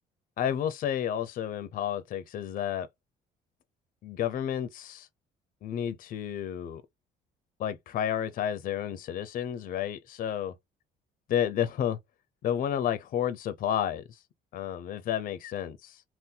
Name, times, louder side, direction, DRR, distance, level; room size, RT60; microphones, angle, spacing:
voice 1, 0.4-2.9 4.0-5.1 5.6-6.8 7.6-10.6 11.3-12.0 12.4-14.2 14.5-16.0, left 9 dB, 55° left, 0.5 m, -31 dB
2.7 x 2.2 x 3.7 m
cardioid pair, 110°, 17 cm